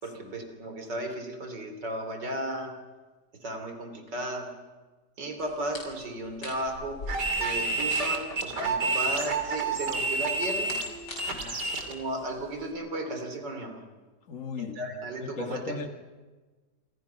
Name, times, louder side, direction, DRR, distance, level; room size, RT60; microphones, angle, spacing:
voice 1, 0.0-2.7 3.4-4.5 5.2-7.0 7.4-10.8 11.9-13.8 14.6-15.9, right 1 dB, 90° right, 6 dB, 4.1 m, -35 dB
sound 1, 5.4-12.7, left 2 dB, 90° left, 6.2 m, -45 dB
sound 2, 7.1-11.9, right 3 dB, 75° right, 3.5 m, -29 dB
voice 2, 11.2-11.7 14.3-15.9, left 4 dB, 50° left, 6 dB, 2.0 m, -38 dB
27.5 x 27.0 x 5.9 m, 1.3 s
omnidirectional pair, 1.8 m